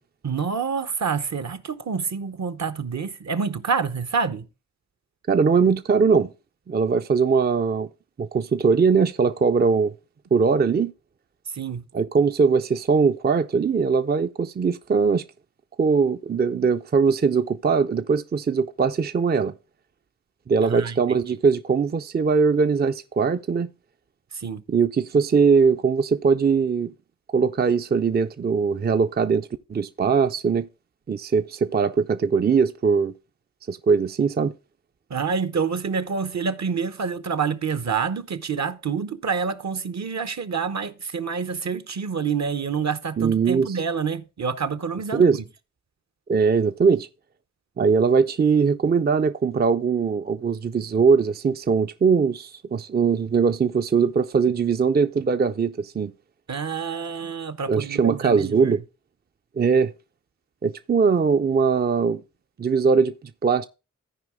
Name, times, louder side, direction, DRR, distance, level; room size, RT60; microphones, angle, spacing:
voice 1, 0.2-4.5 11.5-11.8 20.6-21.2 24.3-24.6 35.1-45.4 56.5-58.8, right 5 dB, 60° right, 0.8 m, -27 dB
voice 2, 5.3-6.3 6.7-7.9 8.2-9.9 10.3-10.9 11.9-15.2 15.8-19.5 20.5-23.7 24.7-26.9 27.3-30.7 31.1-33.1 33.7-34.5 43.2-43.8 45.1-45.4 46.3-47.1 47.8-56.1 57.7-58.8 59.6-59.9 60.6-62.2 62.6-63.1 63.4-63.7, right 5 dB, 30° right, 0.4 m, -21 dB
14.0 x 4.8 x 3.6 m
cardioid pair, 40°, 31 cm